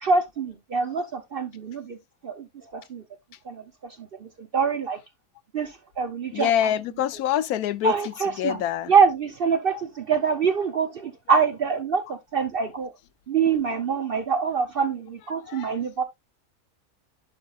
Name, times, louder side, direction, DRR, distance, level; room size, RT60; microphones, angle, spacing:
voice 1, 0.0-2.0 2.2-2.4 2.7-3.0 3.5-3.6 4.5-5.0 5.5-5.7 6.0-6.5 7.8-8.6 8.9-12.9 13.3-16.0, right 5 dB, 55° right, 0.6 m, -24 dB
voice 2, 6.3-8.9 9.7-9.8 15.5-15.7, left 10 dB, 75° left, 1.1 m, -26 dB
11.0 x 5.4 x 2.3 m
omnidirectional pair, 1.7 m